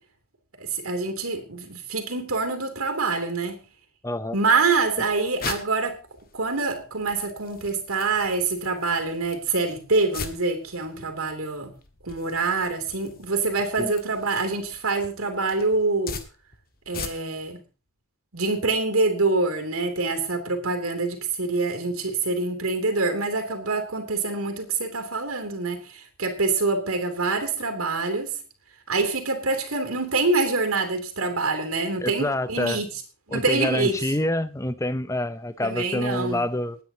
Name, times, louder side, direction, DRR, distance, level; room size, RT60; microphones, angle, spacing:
voice 1, 0.6-3.6 4.3-6.0 6.3-11.7 12.0-16.2 16.9-17.6 18.3-28.3 28.9-32.9 33.3-34.0 35.6-36.4, right 3 dB, 80° right, 5 dB, 2.9 m, -25 dB
voice 2, 4.0-4.3 13.8-13.9 32.0-32.8 33.3-36.8, left 1 dB, 15° left, 13 dB, 0.6 m, -27 dB
sound 1, 4.7-17.5, left 5 dB, 45° left, 1.7 m, -41 dB
28.0 x 9.5 x 2.9 m, 0.34 s
head